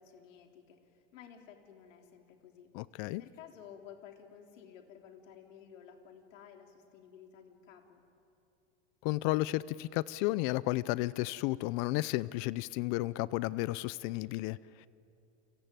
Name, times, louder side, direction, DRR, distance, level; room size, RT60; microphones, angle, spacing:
voice 1, 0.0-2.7 3.2-8.0, left 8 dB, 90° left, 4 dB, 3.3 m, -54 dB
voice 2, 2.7-3.2 9.0-14.9, left 19 dB, 55° left, 19 dB, 0.6 m, -33 dB
29.0 x 22.5 x 9.2 m, 2.7 s
supercardioid pair, 120°, 37 cm